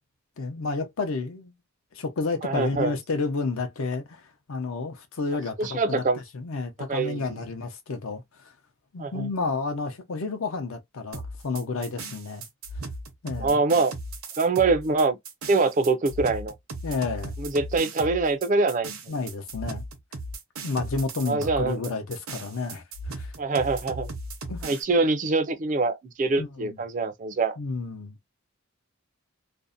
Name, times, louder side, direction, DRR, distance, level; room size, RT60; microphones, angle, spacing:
voice 1, 0.4-1.5 1.9-8.5 8.9-12.5 13.2-13.6 16.8-17.3 19.1-19.8 20.6-23.3 24.5-24.7 26.4-26.8 27.6-28.2, left 3 dB, 70° left, 0.6 m, -31 dB
voice 2, 2.4-3.0 5.6-6.2 6.9-7.4 9.0-9.3 13.4-13.9 14.4-15.2 15.5-16.5 17.4-19.1 21.3-21.9 23.4-24.1 24.6-27.6, right 3 dB, 35° right, 0.4 m, -24 dB
sound 1, 11.1-24.8, right 2 dB, 75° right, 0.7 m, -37 dB
2.5 x 2.0 x 2.3 m
head